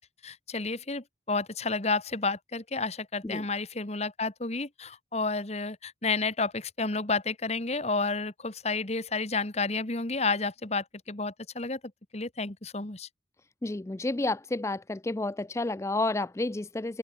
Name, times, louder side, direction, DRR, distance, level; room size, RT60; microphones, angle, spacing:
voice 1, 0.2-11.8 12.1-13.1, left 3 dB, 35° left, 1.6 m, -31 dB
voice 2, 13.6-17.0, left 2 dB, 15° left, 0.4 m, -30 dB
open air
head